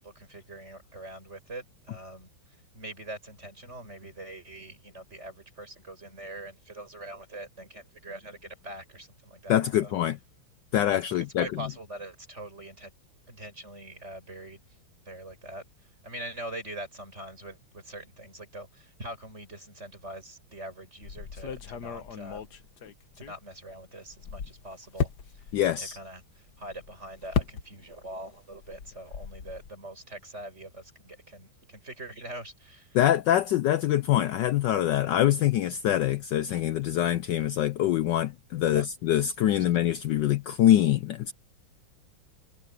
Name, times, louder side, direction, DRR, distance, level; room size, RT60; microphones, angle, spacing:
voice 1, 0.0-2.3 2.7-9.9 11.4-12.9 13.3-14.6 15.1-22.5 23.2-33.0 38.7-38.9 39.5-39.7, right 1 dB, 30° right, 7.5 m, -43 dB
voice 2, 9.5-10.2 10.7-11.5 25.5-26.0 32.9-41.3, left 12 dB, 70° left, 1.1 m, -24 dB
sound 1, 21.0-23.7 24.1-28.1 28.4-29.7, left 7 dB, 55° left, 1.6 m, -35 dB
omnidirectional pair, 2.3 m